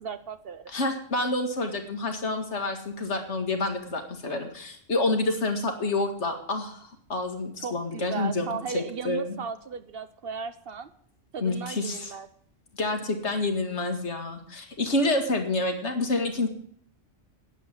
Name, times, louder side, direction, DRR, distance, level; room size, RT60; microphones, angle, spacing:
voice 1, 0.0-0.6 7.6-10.9 11.3-12.3, right 6 dB, 55° right, 12 dB, 0.9 m, -36 dB
voice 2, 0.7-9.4 11.4-12.1 12.7-16.5, left 2 dB, 65° left, 5 dB, 2.2 m, -28 dB
10.0 x 8.0 x 9.1 m, 0.62 s
omnidirectional pair, 1.3 m